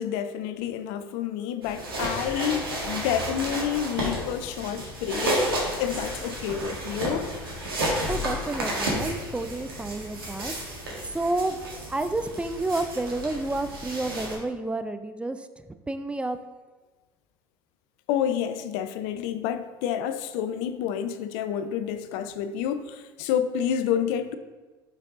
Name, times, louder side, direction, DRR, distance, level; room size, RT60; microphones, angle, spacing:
voice 1, 0.0-7.3 18.1-24.3, left 9 dB, 60° left, 0.5 m, -29 dB
sound 1, 1.6-14.4, right 1 dB, 85° right, 1.6 m, -32 dB
voice 2, 8.1-10.5 11.0-11.6 11.9-15.5 15.9-16.4, right 2 dB, 10° right, 0.4 m, -30 dB
5.3 x 5.2 x 3.7 m
hypercardioid pair, 70°, 12 cm